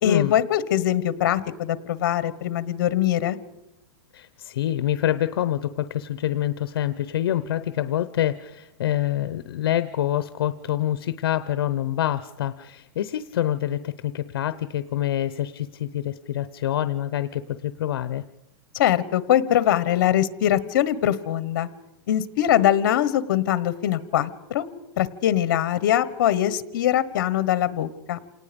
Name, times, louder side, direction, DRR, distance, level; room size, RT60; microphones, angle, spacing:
voice 1, 0.0-3.4 18.7-21.7 22.1-24.7 25.0-28.2, left 11 dB, 50° left, 16 dB, 1.3 m, -22 dB
voice 2, 4.1-18.2, left 12 dB, 70° left, 13 dB, 0.8 m, -26 dB
28.0 x 18.5 x 5.3 m, 0.95 s
supercardioid pair, 175°, 13 cm